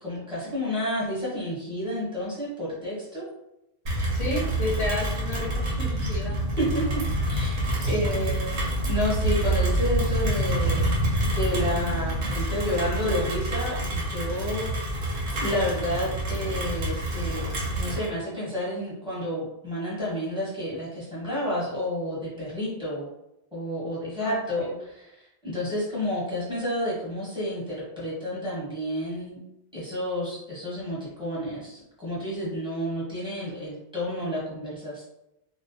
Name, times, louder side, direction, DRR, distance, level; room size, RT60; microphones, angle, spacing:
voice 1, 0.0-3.2 6.6-7.0 7.3-10.9 11.3-14.7 15.4-23.1 23.5-29.4 29.7-35.0, equal, 5° right, -8 dB, 0.9 m, -30 dB
Rain, 3.9-18.1, right 1 dB, 90° right, 1.0 m, -27 dB
voice 2, 4.1-6.4 7.6-7.8 8.1-8.4 24.2-24.7, left 2 dB, 45° left, -4 dB, 0.6 m, -32 dB
2.2 x 2.1 x 2.6 m, 0.87 s
omnidirectional pair, 1.1 m